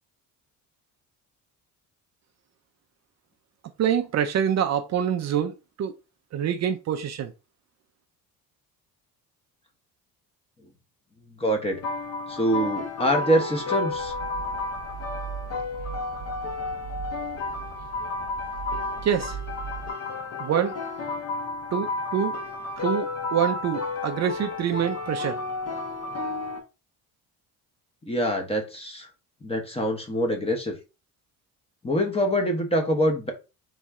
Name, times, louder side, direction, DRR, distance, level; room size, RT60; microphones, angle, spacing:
voice 1, 3.8-5.9 6.3-7.3 19.0-19.4 20.4-20.8 21.7-22.3 22.8-25.4, right 9 dB, 45° right, 0.5 m, -26 dB
voice 2, 11.4-11.8 12.3-14.1 28.0-29.1 29.4-30.8 31.8-33.3, equal, 15° left, 1.1 m, -25 dB
sound 1, 11.7-26.6, left 3 dB, 40° left, 1.2 m, -32 dB
sound 2, 13.9-19.9, right 8 dB, 25° right, 1.1 m, -39 dB
4.2 x 3.2 x 3.6 m
cardioid pair, 135°, 37 cm